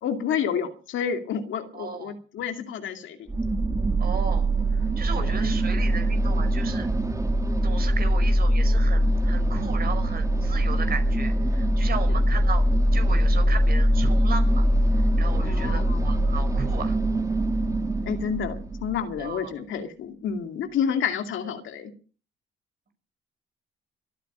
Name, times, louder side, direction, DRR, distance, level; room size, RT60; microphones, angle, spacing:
voice 1, 0.0-3.3 5.2-5.5 15.4-16.1 18.0-21.9, left 7 dB, 75° left, 6 dB, 2.5 m, -30 dB
voice 2, 1.7-2.2 4.0-6.9 7.6-12.6 12.9-14.7 15.2-17.0 19.2-19.5, right 5 dB, 50° right, 8 dB, 5.1 m, -35 dB
sound 1, 3.3-19.2, right 1 dB, 15° right, 2.0 m, -22 dB
24.0 x 9.3 x 5.6 m, 0.39 s
cardioid pair, 90°, 20 cm